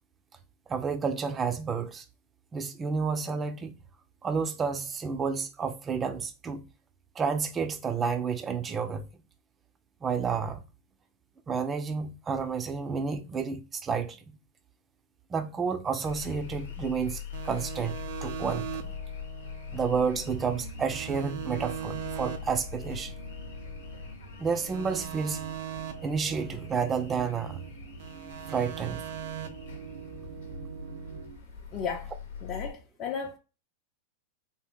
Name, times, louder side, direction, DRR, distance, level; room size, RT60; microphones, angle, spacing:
voice 1, 0.7-2.0 2.5-3.7 4.2-6.6 7.2-9.1 10.0-10.6 11.5-14.4 15.3-17.9 18.2-18.9 19.7-23.1 24.4-25.4 26.0-27.6 28.5-29.0, right 5 dB, 20° right, 0.5 m, -30 dB
sound 1, 16.0-32.7, left 6 dB, 90° left, 0.9 m, -42 dB
sound 2, 17.3-20.6 20.9-24.1 24.5-27.7 28.0-31.3, right 10 dB, 70° right, 0.5 m, -41 dB
sound 3, 19.8-31.4, right 4 dB, 85° right, 1.6 m, -49 dB
voice 2, 31.7-32.1 32.4-33.4, left 6 dB, 40° left, 0.6 m, -34 dB
3.6 x 2.4 x 3.4 m
hypercardioid pair, 125°, 0 cm